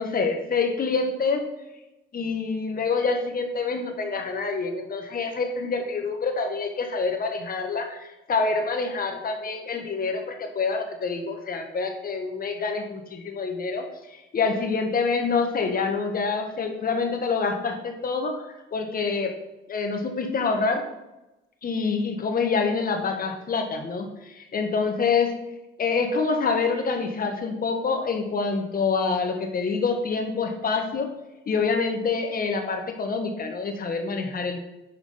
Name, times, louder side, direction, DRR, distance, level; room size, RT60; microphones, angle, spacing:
voice 1, 0.0-1.5 2.1-18.4 18.7-19.4 19.7-20.9 21.6-25.4 25.8-31.1 31.5-34.6, left 4 dB, 45° left, 4 dB, 1.4 m, -26 dB
5.8 x 5.1 x 5.6 m, 0.98 s
cardioid pair, 90°, 20 cm